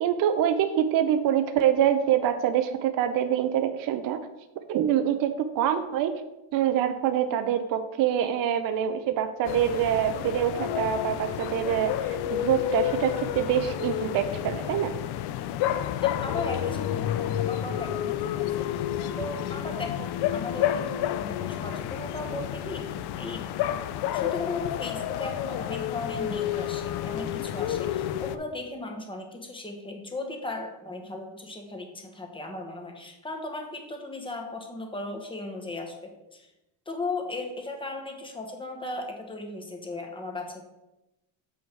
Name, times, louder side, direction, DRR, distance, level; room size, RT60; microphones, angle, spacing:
voice 1, 0.0-4.2 4.7-6.1 6.5-14.9, right 10 dB, 45° right, 8 dB, 0.6 m, -25 dB
sound 1, 9.4-28.4, left 11 dB, 55° left, 0.6 m, -30 dB
voice 2, 16.0-18.8 19.2-23.9 24.1-36.5 36.9-40.6, left 2 dB, 10° left, 2 dB, 1.2 m, -37 dB
7.2 x 5.5 x 4.6 m, 0.97 s
cardioid pair, 130°, 47 cm